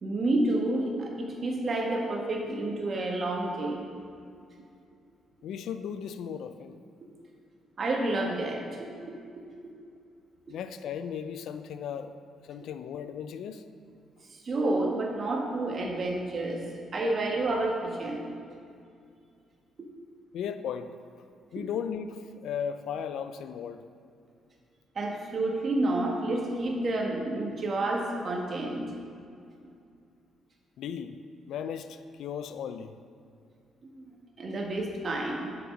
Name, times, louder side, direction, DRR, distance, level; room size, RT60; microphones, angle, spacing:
voice 1, 0.0-3.9 7.8-9.4 14.3-16.6 16.9-18.3 24.9-28.9 33.8-34.1 34.4-35.5, right 2 dB, 45° right, 1 dB, 1.3 m, -30 dB
voice 2, 5.4-6.8 10.5-12.1 12.4-13.6 20.3-21.0 21.5-23.8 30.8-31.2 31.5-33.0, left 8 dB, 75° left, 10 dB, 0.4 m, -36 dB
7.0 x 6.0 x 5.3 m, 2.4 s
cardioid pair, 90°, 0 cm